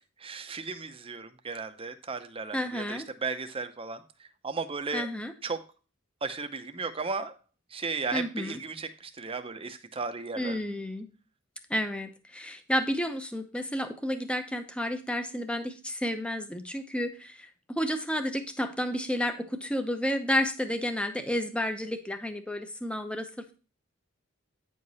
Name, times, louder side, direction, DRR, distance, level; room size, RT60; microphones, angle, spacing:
voice 1, 0.2-4.0 4.4-5.1 5.4-5.6 6.2-7.3 7.7-10.6, right 4 dB, 25° right, 8 dB, 0.7 m, -35 dB
voice 2, 2.5-3.1 4.9-5.3 8.1-8.6 10.4-11.1 11.7-23.5, equal, 5° left, 8 dB, 0.8 m, -31 dB
9.3 x 4.9 x 4.1 m, 0.35 s
head